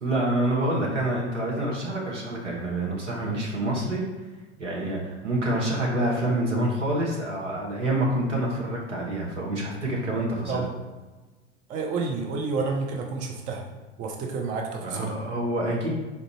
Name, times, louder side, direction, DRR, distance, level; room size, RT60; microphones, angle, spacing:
voice 1, 0.0-4.0 4.6-10.6 14.8-15.9, right 1 dB, 80° right, -3 dB, 1.1 m, -27 dB
voice 2, 11.7-13.6 14.0-15.1, right 4 dB, 25° right, 1 dB, 0.4 m, -29 dB
4.2 x 2.5 x 3.0 m, 1.2 s
figure-of-eight pair, 85°, 36 cm